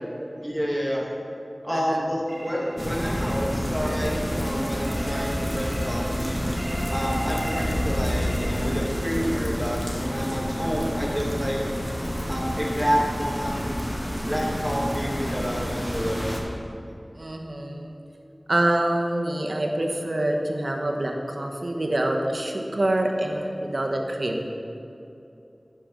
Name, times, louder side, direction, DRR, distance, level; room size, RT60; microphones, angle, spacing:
voice 1, 0.4-1.0 1.6-6.4 6.9-11.6 12.3-13.7 14.2-16.6, equal, 10° right, -3 dB, 2.2 m, -29 dB
sound 1, 2.3-9.1, right 1 dB, 80° right, 1.3 m, -38 dB
sound 2, 2.8-16.4, equal, 15° left, 1.8 m, -29 dB
voice 2, 17.1-18.0 18.5-24.5, right 1 dB, 65° right, 2 dB, 1.1 m, -26 dB
11.0 x 5.2 x 6.2 m, 2.7 s
wide cardioid pair, 45°, 0 cm